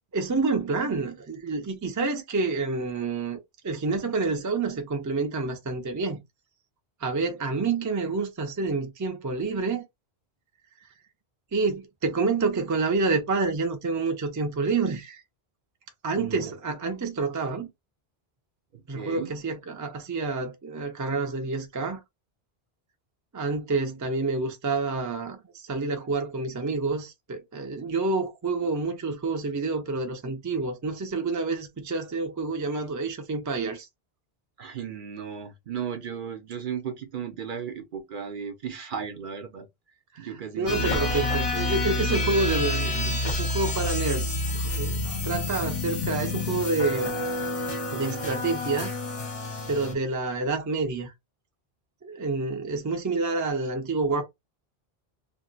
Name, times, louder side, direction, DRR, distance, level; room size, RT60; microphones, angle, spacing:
voice 1, 0.1-6.2 7.0-9.8 11.5-15.2 16.0-17.7 18.9-22.0 23.3-33.9 40.1-40.3 40.6-47.1 47.9-48.9 49.7-51.1 52.0-54.2, right 3 dB, 25° right, 0.4 m, -28 dB
voice 2, 16.2-16.5 18.7-19.3 34.6-39.7 40.2-41.2, right 7 dB, 60° right, 0.7 m, -35 dB
sound 1, 40.7-49.9, left 2 dB, 40° left, 0.7 m, -28 dB
2.5 x 2.1 x 3.8 m
omnidirectional pair, 1.1 m